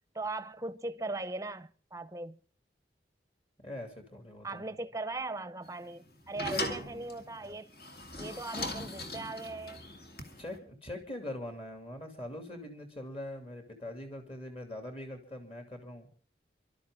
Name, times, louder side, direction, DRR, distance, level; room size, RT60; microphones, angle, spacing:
voice 1, 0.1-2.4 4.4-7.7 8.2-9.8, right 2 dB, 20° right, 0.8 m, -39 dB
voice 2, 3.6-4.6 6.5-6.7 10.4-16.1, left 1 dB, 30° left, 3.0 m, -42 dB
sound 1, 5.6-10.6, left 1 dB, 60° left, 2.4 m, -40 dB
29.5 x 12.5 x 3.7 m
head